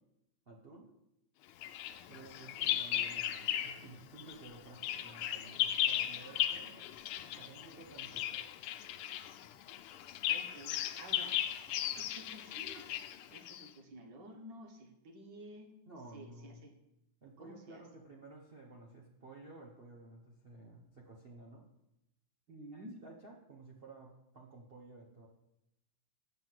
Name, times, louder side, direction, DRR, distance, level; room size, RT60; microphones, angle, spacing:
voice 1, 0.5-0.9 2.1-6.9 7.3-8.4 15.9-16.7 17.2-21.6 22.7-25.3, right 2 dB, 40° right, -1 dB, 0.8 m, -54 dB
Bird vocalization bird call bird song, 1.6-3.9 4.2-13.7, left 12 dB, 90° left, 1.5 m, -36 dB
voice 2, 10.3-11.4 11.7-12.9 13.3-15.7 16.1-16.7 17.4-17.8 22.5-23.0, right 1 dB, 55° right, 4 dB, 1.8 m, -52 dB
7.9 x 5.9 x 7.5 m, 0.86 s
omnidirectional pair, 2.4 m